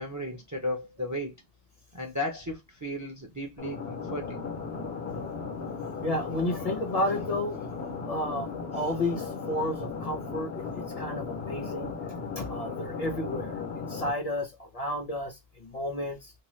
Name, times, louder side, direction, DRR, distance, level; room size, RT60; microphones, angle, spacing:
voice 1, 0.0-1.3 1.9-4.4, left 1 dB, 25° right, 0.4 m, -34 dB
sound 1, 3.6-14.1, left 5 dB, 80° left, 1.1 m, -36 dB
voice 2, 6.0-7.6 8.1-11.9 12.4-16.3, left 1 dB, 45° left, 0.6 m, -32 dB
2.7 x 2.2 x 3.0 m
omnidirectional pair, 1.1 m